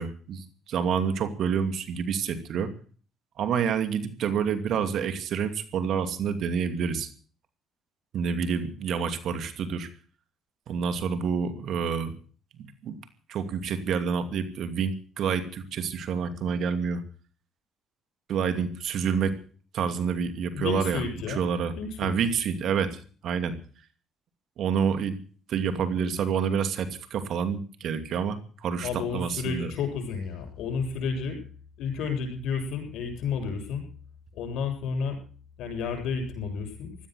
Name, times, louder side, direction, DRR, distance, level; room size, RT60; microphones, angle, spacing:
voice 1, 0.0-2.7 3.4-7.1 8.1-9.9 10.7-12.1 12.6-13.0 13.3-17.0 18.3-19.4 19.7-21.7 22.0-23.6 24.6-25.2 25.5-29.7, right 6 dB, 65° right, 9 dB, 2.4 m, -28 dB
voice 2, 20.5-21.4 21.8-22.1 28.8-31.4 31.8-33.8 34.3-35.2 35.6-37.1, left 5 dB, 75° left, 4 dB, 7.3 m, -31 dB
17.0 x 12.5 x 6.4 m, 0.42 s
supercardioid pair, 75°, 0 cm